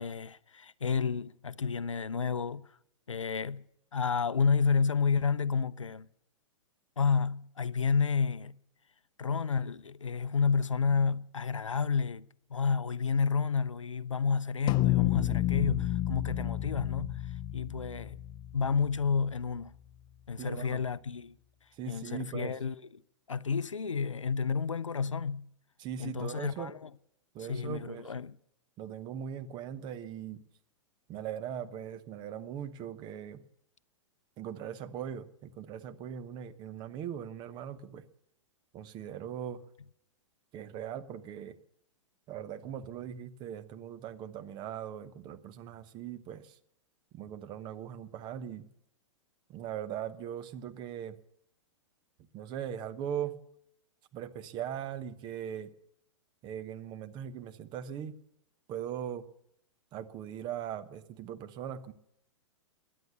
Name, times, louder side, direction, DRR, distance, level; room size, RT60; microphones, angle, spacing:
voice 1, 0.0-2.7 3.1-3.6 3.9-6.1 7.0-8.5 9.2-12.3 12.5-17.2 17.5-18.2 18.5-19.7 20.3-21.4 21.9-22.8 23.3-25.5 26.0-26.9 27.4-28.4, left 5 dB, 80° left, 0.5 m, -30 dB
sound 1, 14.7-19.3, left 15 dB, 25° left, 0.5 m, -30 dB
voice 2, 20.4-20.8 21.8-22.6 25.8-26.7 27.3-28.1 28.8-30.4 31.1-33.4 34.4-38.0 38.7-39.6 40.5-41.6 42.3-46.5 47.1-48.7 49.5-51.2 52.3-53.3 54.1-55.7 56.4-58.2 58.7-59.2 59.9-61.9, right 9 dB, 30° right, 1.0 m, -40 dB
17.5 x 11.0 x 6.9 m
figure-of-eight pair, 105°, 16 cm